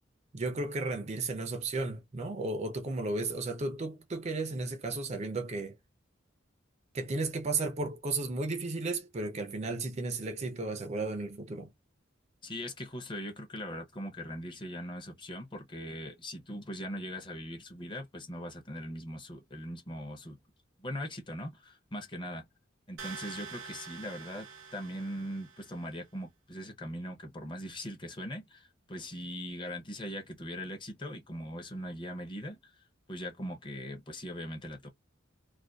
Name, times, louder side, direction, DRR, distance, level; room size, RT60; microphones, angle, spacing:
voice 1, 0.3-5.8 6.9-11.7, right 3 dB, 35° right, 0.4 m, -34 dB
voice 2, 12.4-20.4 20.8-22.4 22.9-32.7 33.1-34.9, equal, 25° left, 0.6 m, -40 dB
sound 1, 23.0-25.9, right 6 dB, 90° right, 0.7 m, -46 dB
2.5 x 2.2 x 2.2 m
head